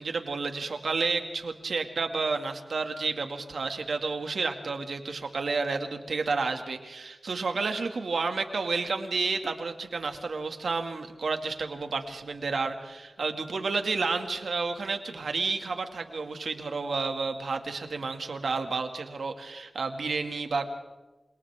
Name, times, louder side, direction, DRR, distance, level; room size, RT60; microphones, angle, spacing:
voice 1, 0.0-20.7, right 4 dB, 80° right, 6 dB, 2.3 m, -31 dB
28.0 x 28.0 x 3.7 m, 1.1 s
wide cardioid pair, 60°, 0 cm